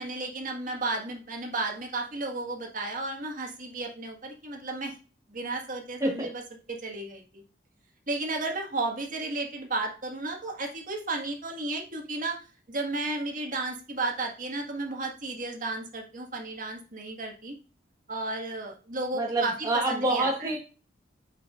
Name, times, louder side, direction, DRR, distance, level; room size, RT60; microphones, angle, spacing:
voice 1, 0.0-4.9 5.3-6.4 6.7-7.4 8.1-12.4 12.7-17.5 18.1-20.5, right 2 dB, 45° right, 2 dB, 1.6 m, -33 dB
voice 2, 19.2-20.6, right 2 dB, 20° right, -1 dB, 1.2 m, -27 dB
7.6 x 5.5 x 2.4 m, 0.35 s
head